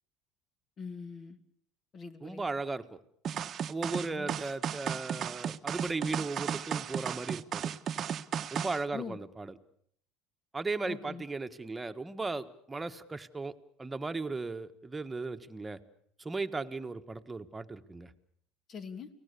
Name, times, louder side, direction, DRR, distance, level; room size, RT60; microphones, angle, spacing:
voice 1, 0.8-1.4 1.9-2.5 4.1-4.4 8.9-9.2 10.8-11.2 18.7-19.1, left 6 dB, 40° left, 9 dB, 2.6 m, -42 dB
voice 2, 2.2-3.0 3.7-7.7 8.5-9.6 10.5-13.5 13.8-15.8 16.2-18.1, right 3 dB, 15° right, 7 dB, 1.5 m, -36 dB
sound 1, 3.2-8.8, right 8 dB, 45° right, 1.0 m, -35 dB
30.0 x 19.0 x 7.0 m, 0.67 s
supercardioid pair, 90°, 0 cm